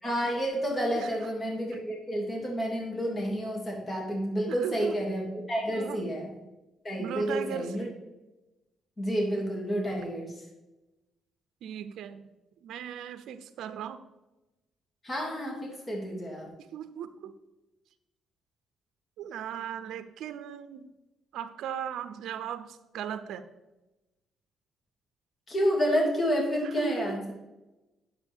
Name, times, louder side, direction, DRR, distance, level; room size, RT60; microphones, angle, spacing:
voice 1, 0.0-6.3 6.8-7.8 9.0-10.3 15.0-16.5 25.5-27.3, equal, 30° left, -1 dB, 2.5 m, -30 dB
voice 2, 0.9-1.3 4.5-5.0 5.7-6.1 7.0-7.9 11.6-12.3 12.6-14.0 16.7-17.3 19.2-20.9 21.3-23.5 26.6-27.2, right 9 dB, 80° right, 11 dB, 0.5 m, -38 dB
9.7 x 7.3 x 3.5 m, 1.0 s
cardioid pair, 90°, 0 cm